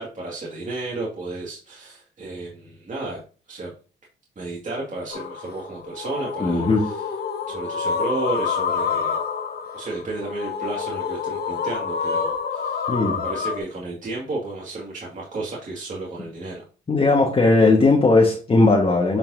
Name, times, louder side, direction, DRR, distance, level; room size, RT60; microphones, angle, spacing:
voice 1, 0.0-3.2 3.5-3.7 4.4-7.0 7.5-9.2 9.7-16.6, right 2 dB, 40° right, 2.2 m, -32 dB
sound 1, 5.1-13.6, left 6 dB, 55° left, 1.1 m, -28 dB
voice 2, 6.4-6.8 12.9-13.2 16.9-19.2, left 3 dB, 30° left, 1.6 m, -17 dB
9.1 x 4.4 x 2.8 m
cardioid pair, 90°, 20 cm